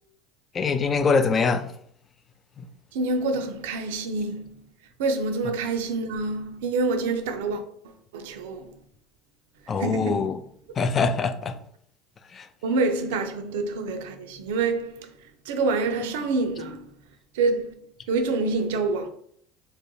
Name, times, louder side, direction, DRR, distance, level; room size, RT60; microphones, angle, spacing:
voice 1, 0.5-1.8 2.6-2.7 9.7-10.4 10.7-11.6 12.2-12.5, left 4 dB, 35° left, 0.3 m, -24 dB
voice 2, 2.9-4.7 5.0-8.8 9.8-10.3 12.6-15.2 15.5-16.9 17.3-19.1, right 3 dB, 80° right, 0.4 m, -27 dB
2.2 x 2.0 x 3.0 m
hypercardioid pair, 90°, 0 cm